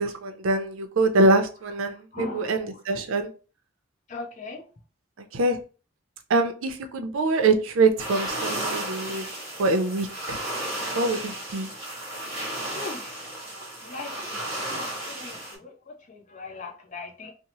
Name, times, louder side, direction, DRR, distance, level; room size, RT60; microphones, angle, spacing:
voice 1, 0.0-3.3 5.3-5.6 6.3-9.3 9.6-10.4 10.9-11.7, right 2 dB, 90° right, 0.5 m, -24 dB
voice 2, 2.1-2.6 4.1-4.6 12.7-13.3 13.8-17.3, left 3 dB, 35° left, 0.5 m, -40 dB
sound 1, 8.0-15.5, right 1 dB, 15° right, 1.2 m, -33 dB
2.7 x 2.1 x 2.9 m
head